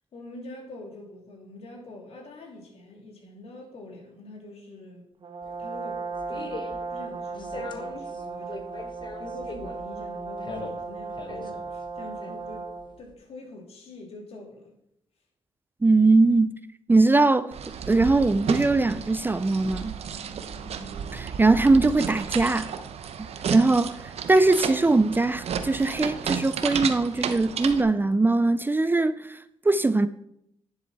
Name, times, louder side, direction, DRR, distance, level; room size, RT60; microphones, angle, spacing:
voice 1, 0.1-5.0 5.6-6.6 6.9-8.7 9.2-12.7 13.0-14.7 20.6-21.1, left 2 dB, 65° left, 2.9 m, -44 dB
Brass instrument, 5.2-13.0, right 4 dB, 50° right, 1.2 m, -36 dB
sound 1, 5.4-13.1, left 3 dB, 45° left, 1.4 m, -41 dB
voice 2, 15.8-16.5 16.9-17.5 17.9-20.0 21.1-22.7 23.2-23.9 24.3-29.4 29.6-30.1, right 3 dB, 20° right, 0.4 m, -21 dB
sound 2, 17.5-27.8, right 7 dB, 65° right, 0.9 m, -33 dB
10.0 x 7.6 x 4.2 m
cardioid pair, 75°, 11 cm